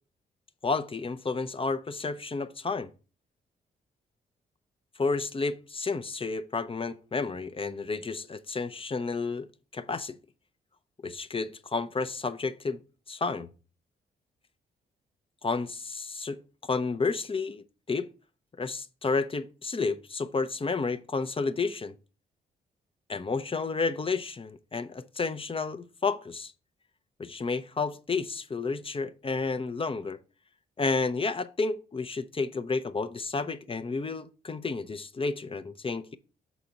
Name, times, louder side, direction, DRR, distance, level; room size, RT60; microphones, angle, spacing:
voice 1, 0.6-2.9 5.0-9.5 9.7-10.2 11.0-12.8 13.1-13.5 15.4-18.1 18.6-21.9 23.1-26.5 27.2-30.2 30.8-36.2, left 4 dB, 30° left, 0.7 m, -31 dB
5.8 x 4.1 x 5.0 m
supercardioid pair, 50°, 19 cm